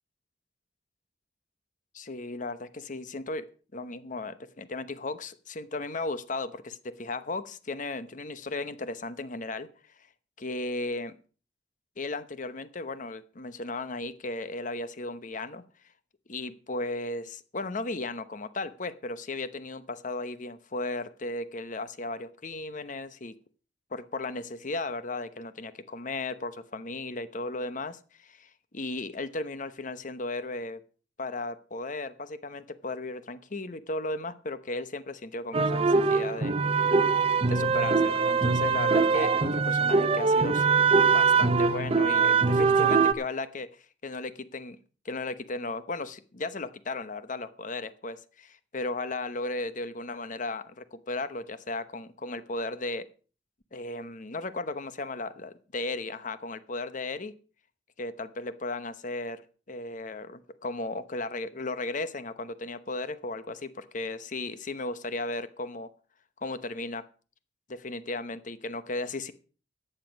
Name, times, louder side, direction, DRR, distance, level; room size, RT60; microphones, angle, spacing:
voice 1, 1.9-3.4 3.7-9.7 10.4-11.1 12.0-15.6 16.3-23.3 23.9-30.8 31.2-36.9 37.5-40.7 41.1-43.7 44.0-44.8 45.0-53.1 53.7-57.3 58.0-59.4 59.7-65.9 66.4-67.0 67.7-69.3, left 2 dB, 45° left, 13 dB, 0.9 m, -35 dB
sound 1, 35.5-43.1, right 5 dB, 30° right, 0.6 m, -23 dB
14.0 x 9.0 x 5.3 m, 0.39 s
head